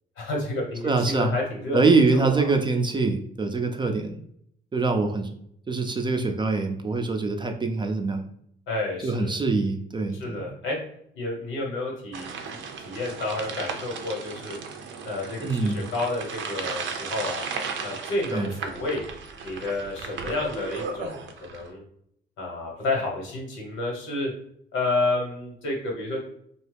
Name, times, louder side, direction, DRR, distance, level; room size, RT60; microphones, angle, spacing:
voice 1, 0.2-2.5 8.7-9.4 10.1-10.8 11.1-12.3 12.8-14.6 15.0-17.4 17.8-19.0 19.4-21.8 22.4-24.3 24.7-26.2, left 2 dB, 90° left, -1 dB, 1.2 m, -30 dB
voice 2, 0.8-1.3 1.7-4.2 4.7-5.3 5.7-8.3 9.0-10.5 15.4-15.8 18.3-18.5, right 3 dB, 25° right, 4 dB, 0.4 m, -24 dB
sound 1, 12.1-21.7, right 5 dB, 70° right, 0.5 m, -36 dB
2.8 x 2.3 x 3.3 m, 0.69 s
cardioid pair, 90°, 20 cm